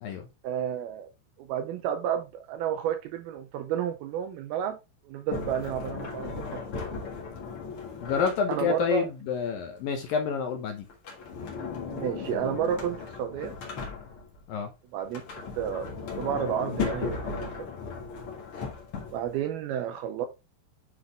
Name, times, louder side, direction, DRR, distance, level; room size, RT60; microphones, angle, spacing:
voice 1, 0.4-1.1 1.4-4.8 5.1-6.9 8.5-9.1 11.9-13.5 14.9-15.2 15.6-15.9 16.2-17.7 19.0-20.3, right 9 dB, 85° right, 2.3 m, -31 dB
Sliding door, 5.3-8.8 10.9-14.4 15.0-19.4, left 5 dB, 50° left, 1.7 m, -36 dB
voice 2, 8.0-10.9 14.5-14.7, left 6 dB, 75° left, 2.2 m, -28 dB
9.6 x 4.0 x 3.4 m
omnidirectional pair, 4.9 m